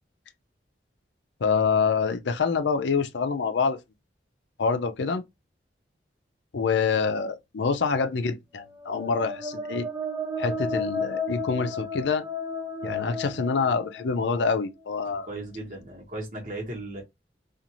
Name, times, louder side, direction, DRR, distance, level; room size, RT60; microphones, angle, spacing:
voice 1, 1.4-3.8 4.6-5.2 6.5-9.9 10.4-12.2 12.8-15.3, left 5 dB, 75° left, 0.5 m, -26 dB
sound 1, 8.7-14.5, left 2 dB, 15° right, 0.4 m, -33 dB
voice 2, 15.1-17.0, right 2 dB, 45° right, 1.2 m, -36 dB
2.6 x 2.4 x 2.9 m
head